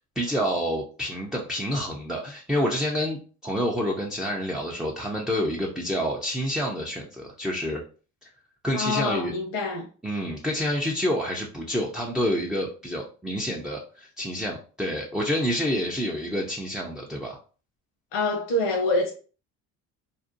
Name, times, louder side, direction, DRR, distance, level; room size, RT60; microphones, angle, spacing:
voice 1, 0.2-7.8 8.6-9.3 10.0-17.4, equal, ahead, 0.3 m, -28 dB
voice 2, 8.7-9.9 18.1-19.1, left 2 dB, 85° left, 0.8 m, -26 dB
2.6 x 2.0 x 2.5 m
supercardioid pair, 85°, 38 cm